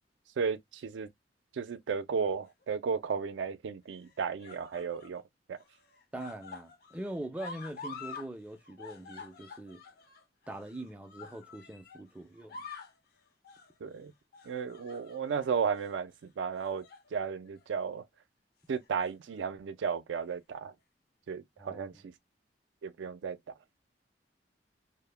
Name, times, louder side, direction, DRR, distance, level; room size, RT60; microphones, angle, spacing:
voice 1, 0.4-1.1 1.5-5.2 5.5-5.6 13.8-14.1 14.5-16.1 16.4-16.8 17.1-18.0 18.7-20.7 21.3-21.9 22.8-23.4, right 6 dB, 90° right, 0.3 m, -34 dB
sound 1, 2.4-3.0 3.9-5.2 5.5-8.3 8.6-12.0 12.3-13.0 13.4-13.7 14.3-15.4 15.7-15.9 16.6-17.1 17.4-17.6 18.7-19.4 20.3-20.4, left 5 dB, 55° left, 0.5 m, -48 dB
voice 2, 6.1-9.8 10.5-12.7 21.6-22.0, right 1 dB, 10° right, 0.4 m, -42 dB
2.1 x 2.1 x 3.1 m
head